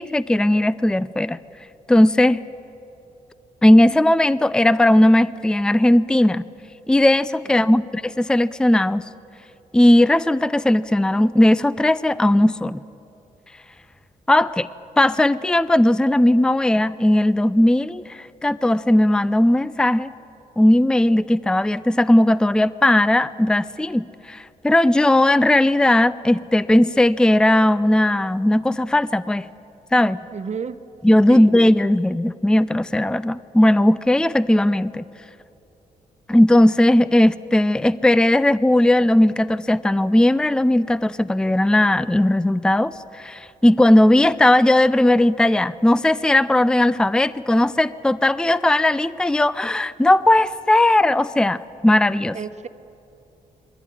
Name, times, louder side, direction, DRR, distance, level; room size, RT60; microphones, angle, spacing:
voice 1, 0.0-1.4 1.9-2.4 3.6-6.4 6.9-9.1 9.7-12.8 14.3-14.7 15.0-20.1 20.6-29.5 29.9-30.2 31.0-35.1 36.3-52.4, left 1 dB, 5° left, 17 dB, 0.5 m, -17 dB
voice 2, 7.4-7.9 30.3-30.8 31.3-31.5 52.3-52.7, right 6 dB, 45° right, 10 dB, 1.2 m, -32 dB
21.5 x 16.5 x 9.8 m, 2.8 s
cardioid pair, 60°, 16 cm